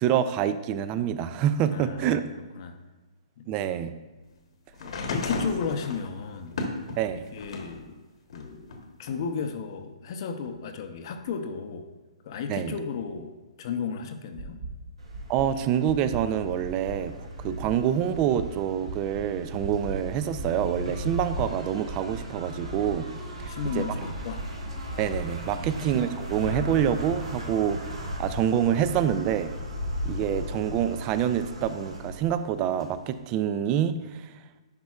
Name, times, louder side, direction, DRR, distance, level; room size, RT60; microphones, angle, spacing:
voice 1, 0.0-2.3 3.5-3.9 7.0-7.3 12.5-12.7 15.3-17.1 17.4-23.1 23.4-23.5 23.7-23.8 25.0-27.9 28.2-29.5 30.1-34.3, right 9 dB, 25° right, 12 dB, 0.3 m, -26 dB
voice 2, 1.7-2.2 2.6-2.7 3.4-3.6 4.8-6.6 7.1-8.0 8.3-8.7 9.0-11.9 12.2-14.6 23.3-24.4 25.4-25.8, left 6 dB, 45° left, 7 dB, 0.6 m, -34 dB
sound 1, 4.8-7.8 8.3-9.4 10.5-10.6, left 2 dB, 65° left, 1.1 m, -34 dB
sound 2, 14.4-14.7 15.1-15.4 15.9-16.2 16.6-16.9 17.4-17.7 18.1-18.4 18.9-19.2 19.6-19.9 20.4-20.7 21.1-21.4 21.9-22.2 22.6-22.9 23.4-23.7 24.1-24.5 24.9-25.2 25.6-26.0 26.4-26.5, right 4 dB, 60° right, 1.8 m, -38 dB
sound 3, 15.0-33.1, equal, 85° right, 2.2 m, -37 dB
10.5 x 5.2 x 2.4 m, 1.2 s
hypercardioid pair, 150°, 3 cm